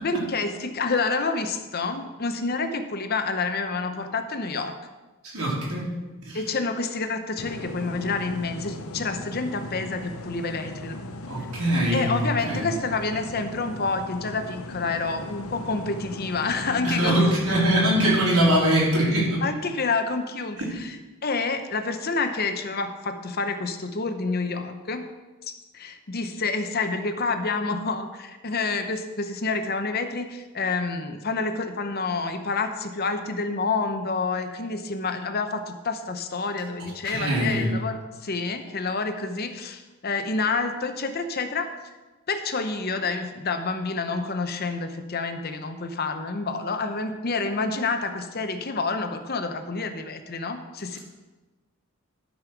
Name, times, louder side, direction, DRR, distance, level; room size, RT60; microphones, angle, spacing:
voice 1, 0.0-4.7 6.3-11.0 11.9-17.3 19.4-21.0 21.2-25.1 25.5-41.7 42.3-51.0, left 4 dB, 45° left, 7 dB, 0.8 m, -28 dB
voice 2, 5.2-5.9 6.3-6.4 11.3-12.1 12.4-12.7 16.8-19.4 20.6-20.7 37.0-37.7, right 1 dB, 80° right, -5 dB, 4.0 m, -22 dB
sound 1, 7.4-18.7, left 2 dB, 80° left, 0.7 m, -38 dB
13.0 x 5.4 x 6.0 m, 1.2 s
head